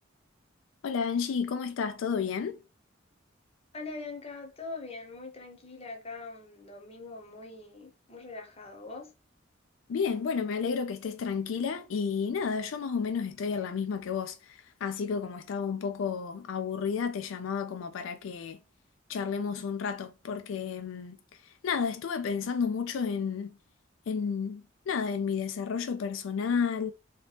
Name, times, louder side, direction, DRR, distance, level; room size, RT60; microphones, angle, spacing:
voice 1, 0.8-2.6 9.9-18.6 19.1-21.2 21.6-23.5 24.1-26.9, left 6 dB, 80° left, 0.4 m, -31 dB
voice 2, 3.7-9.1, left 3 dB, 30° left, 0.7 m, -42 dB
2.9 x 2.8 x 3.3 m
head